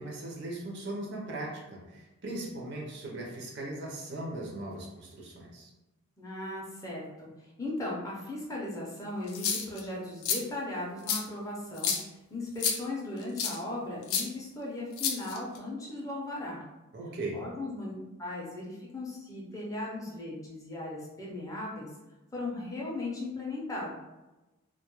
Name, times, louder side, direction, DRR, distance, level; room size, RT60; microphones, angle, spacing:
voice 1, 0.0-5.7 16.9-17.4, right 2 dB, 55° right, -1 dB, 0.5 m, -38 dB
voice 2, 6.2-7.3 7.6-12.0 12.3-16.6 17.3-17.9 18.2-21.9 22.3-23.9, left 2 dB, 15° left, -4 dB, 0.4 m, -37 dB
sound 1, 9.3-9.8 10.2-10.4 11.1-11.2 11.8-12.0 12.6-12.8 13.4-13.6 14.1-14.2 15.0-15.6, left 6 dB, 80° left, 0.4 m, -29 dB
2.2 x 2.0 x 2.9 m, 1.0 s
head